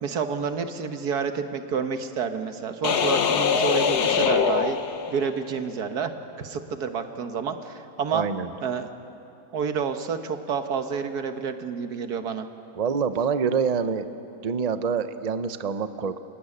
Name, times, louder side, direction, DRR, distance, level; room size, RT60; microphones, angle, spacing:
voice 1, 0.0-4.8 5.1-6.1 6.4-8.3 8.6-8.9 9.5-12.5, right 6 dB, 80° right, 7 dB, 1.8 m, -29 dB
sound 1, 2.8-5.5, left 7 dB, 85° left, 1.6 m, -23 dB
voice 2, 8.1-8.5 12.7-14.1 14.4-16.2, right 6 dB, 35° right, 10 dB, 0.7 m, -26 dB
27.5 x 16.0 x 9.9 m, 2.7 s
omnidirectional pair, 1.7 m